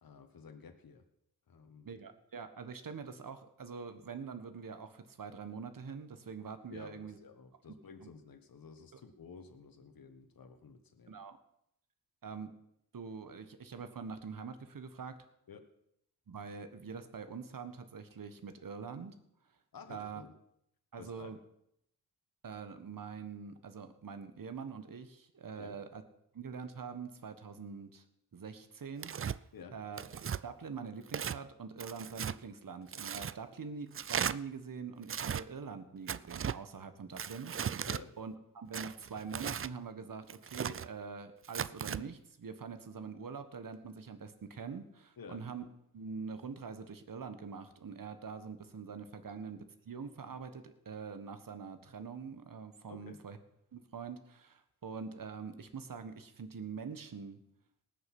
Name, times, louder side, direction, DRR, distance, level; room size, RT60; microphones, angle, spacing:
voice 1, 0.0-1.0 1.5-2.0 6.7-11.2 15.5-15.6 19.7-20.3 21.0-21.3 25.5-25.8 29.5-29.8 37.8-38.1 45.2-45.4 49.3-49.4 52.9-53.2, left 5 dB, 65° left, 6 dB, 1.5 m, -52 dB
voice 2, 1.8-7.2 8.0-8.1 11.1-11.4 12.2-12.5 12.9-15.2 16.3-19.1 19.9-20.2 20.9-21.4 22.4-26.0 26.3-28.0 28.3-29.1 29.7-30.0 30.4-37.9 38.2-45.7 45.9-53.4 53.7-57.4, right 5 dB, 60° right, 10 dB, 1.6 m, -44 dB
Tearing, 29.0-29.4 30.0-30.4 31.1-31.4 31.8-32.4 32.9-33.3 33.9-34.3 35.0-35.4 36.1-36.6 37.2-38.0 38.7-39.7 40.3-40.9 41.4-42.0, right 8 dB, 35° right, 0.4 m, -37 dB
19.0 x 6.8 x 6.2 m, 0.76 s
cardioid pair, 70°, 38 cm